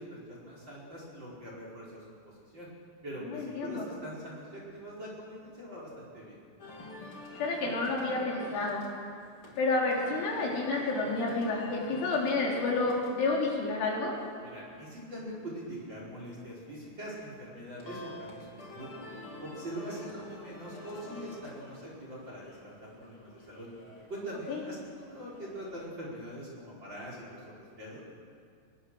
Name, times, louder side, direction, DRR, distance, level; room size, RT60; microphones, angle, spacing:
voice 1, 0.0-2.7 3.0-6.4 14.4-19.0 19.4-23.7 24.1-28.0, right 1 dB, 25° right, -4 dB, 5.1 m, -43 dB
voice 2, 3.3-3.9 7.4-8.9 9.6-14.1 24.5-24.6, left 3 dB, 70° left, -3 dB, 6.0 m, -30 dB
sound 1, 6.6-25.9, left 2 dB, 30° left, 4.0 m, -48 dB
25.0 x 22.0 x 6.5 m, 2.2 s
omnidirectional pair, 5.7 m